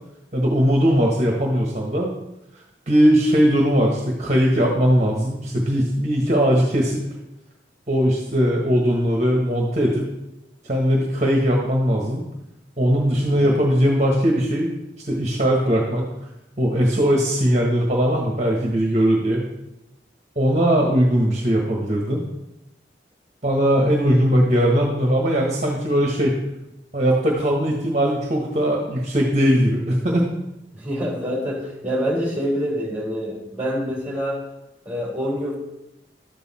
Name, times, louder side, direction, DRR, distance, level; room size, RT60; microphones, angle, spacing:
voice 1, 0.3-2.1 2.9-7.0 7.9-10.1 10.6-12.2 12.8-14.7 15.1-16.0 16.6-19.5 20.4-22.2 23.4-26.3 26.9-30.3, equal, 40° right, -1 dB, 1.4 m, -19 dB
voice 2, 13.1-13.4 16.7-17.0 30.7-34.4 34.8-35.6, equal, 10° right, -4 dB, 3.3 m, -26 dB
12.0 x 8.3 x 4.3 m, 0.91 s
head